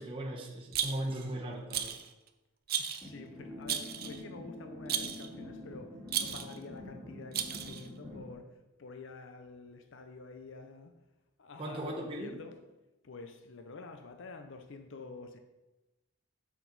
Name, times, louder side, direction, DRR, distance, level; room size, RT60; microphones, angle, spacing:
voice 1, 0.0-2.0 11.6-12.4, right 1 dB, 25° right, 1.0 m, -38 dB
Rattle, 0.7-1.2 1.7-2.1 2.7-3.1 3.7-4.2 4.9-5.3 6.1-6.6 7.3-7.9, right 9 dB, 45° right, 0.5 m, -34 dB
voice 2, 2.8-11.0 11.4-12.6 13.0-15.4, left 3 dB, 60° left, 0.6 m, -48 dB
sound 1, 3.0-8.3, left 1 dB, 10° left, 2.2 m, -46 dB
7.2 x 6.0 x 4.0 m
head